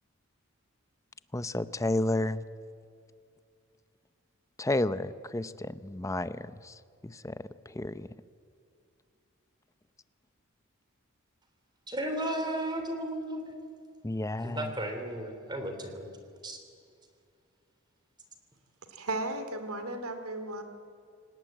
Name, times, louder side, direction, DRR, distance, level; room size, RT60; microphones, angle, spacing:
voice 1, 1.3-2.4 4.6-8.1 14.0-14.7, left 1 dB, 15° left, 13 dB, 0.7 m, -32 dB
voice 2, 11.9-13.4 14.4-16.1 16.4-16.6, right 1 dB, 20° right, 6 dB, 3.1 m, -34 dB
voice 3, 18.9-20.6, right 2 dB, 85° right, 8 dB, 2.6 m, -35 dB
27.5 x 18.5 x 9.0 m, 2.3 s
head